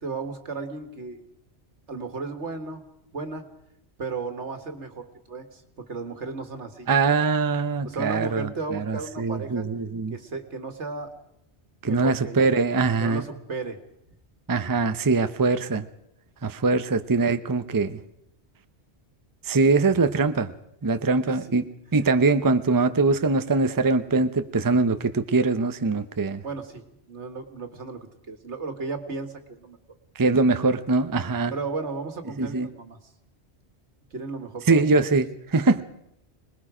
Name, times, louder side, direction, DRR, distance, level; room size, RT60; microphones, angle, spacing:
voice 1, 0.0-1.2 1.9-2.8 3.1-3.5 4.0-6.9 7.8-9.7 10.1-11.1 11.8-12.5 13.0-13.8 21.3-21.4 26.4-29.8 31.5-33.0 34.1-35.0, right 4 dB, 80° right, 7 dB, 2.1 m, -34 dB
voice 2, 6.9-10.1 11.8-13.2 14.5-15.9 16.4-18.0 19.5-20.5 20.8-21.6 21.9-26.4 30.2-31.5 32.4-32.7 34.7-35.8, right 3 dB, 20° right, 10 dB, 0.7 m, -22 dB
26.0 x 20.0 x 5.0 m, 0.79 s
omnidirectional pair, 1.2 m